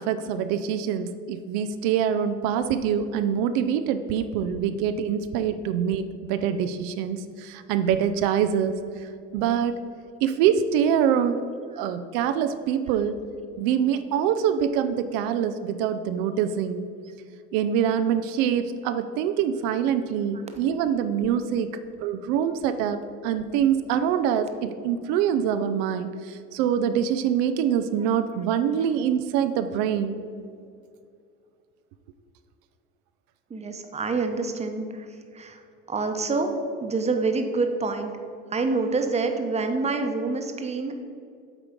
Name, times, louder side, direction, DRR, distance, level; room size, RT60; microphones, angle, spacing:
voice 1, 0.0-9.7 10.2-11.4 11.8-13.2 13.6-16.8 17.5-21.7 22.0-30.2, right 8 dB, 85° right, 10 dB, 0.5 m, -25 dB
voice 2, 33.5-35.6 35.9-36.5 36.8-38.1 38.5-40.9, right 3 dB, 20° right, 5 dB, 0.8 m, -27 dB
8.2 x 3.7 x 5.1 m, 2.3 s
supercardioid pair, 95°, 29 cm